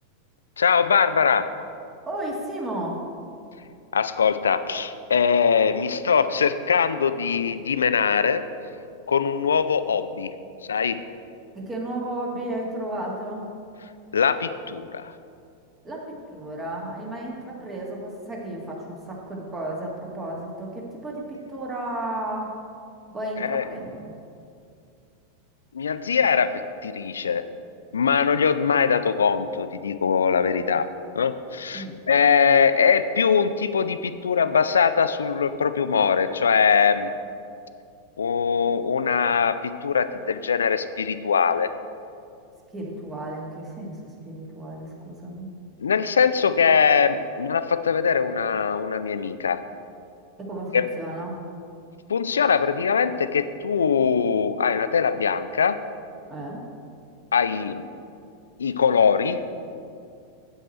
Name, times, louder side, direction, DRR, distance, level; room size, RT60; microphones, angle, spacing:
voice 1, 0.6-1.5 3.9-8.4 9.1-10.3 10.7-11.0 14.1-15.1 23.4-23.6 25.7-27.4 27.9-30.9 31.2-37.1 38.2-41.7 45.8-49.6 50.7-50.9 52.1-55.8 57.3-57.8 58.6-59.4, left 6 dB, 70° left, 12 dB, 0.4 m, -22 dB
voice 2, 2.1-3.0 11.5-13.5 15.8-22.5 23.1-24.1 31.7-32.0 42.7-45.5 50.4-51.4 56.3-56.6, right 1 dB, 20° right, -2 dB, 1.8 m, -33 dB
8.5 x 8.2 x 4.3 m, 2.4 s
figure-of-eight pair, 90°, 0 cm